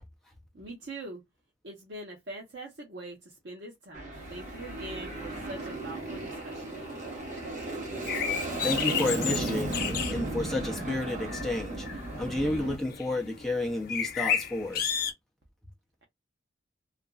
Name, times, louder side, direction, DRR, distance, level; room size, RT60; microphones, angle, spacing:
voice 1, 0.5-1.2 1.6-6.8, right 2 dB, 60° right, 0.8 m, -43 dB
Aircraft, 3.9-12.8, right 2 dB, 40° right, 1.0 m, -35 dB
sound 1, 4.1-15.1, left 8 dB, 50° left, 0.6 m, -35 dB
voice 2, 8.6-11.9 12.2-14.8, left 2 dB, ahead, 0.5 m, -31 dB
2.9 x 2.4 x 2.3 m
head